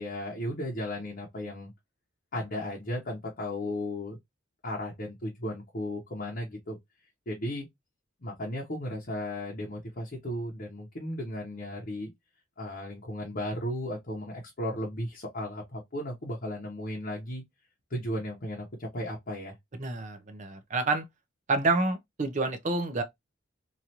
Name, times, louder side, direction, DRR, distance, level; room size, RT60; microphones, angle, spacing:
voice 1, 0.0-1.7 2.3-4.2 4.6-6.8 7.3-7.7 8.2-12.1 12.6-17.4 17.9-19.6, left 1 dB, 45° left, 0.8 m, -35 dB
voice 2, 19.8-21.0 21.5-23.0, right 3 dB, 35° right, 0.6 m, -28 dB
3.1 x 2.5 x 2.8 m
head